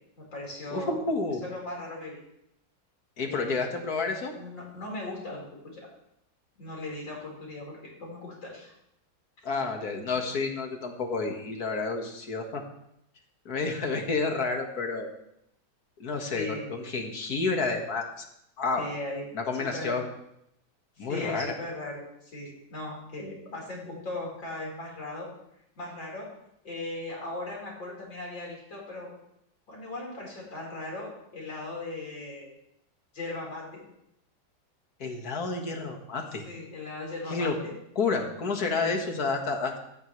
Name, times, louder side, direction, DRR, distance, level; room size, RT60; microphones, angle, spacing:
voice 1, 0.2-1.0 1.4-2.2 3.3-3.7 4.3-5.9 6.6-8.7 16.1-16.7 18.8-19.3 19.7-20.0 21.0-25.3 25.8-26.3 26.6-29.1 29.7-32.5 33.1-33.8 36.4-37.7 38.7-39.0, left 2 dB, 85° left, -3 dB, 5.5 m, -38 dB
voice 2, 0.7-1.4 3.2-4.3 9.4-12.6 13.5-15.1 16.0-18.2 18.6-18.8 19.3-20.1 21.0-21.5 35.0-36.4 37.3-37.5 38.0-39.8, left 4 dB, 55° left, 3 dB, 2.2 m, -30 dB
17.0 x 13.5 x 3.3 m, 0.77 s
omnidirectional pair, 2.0 m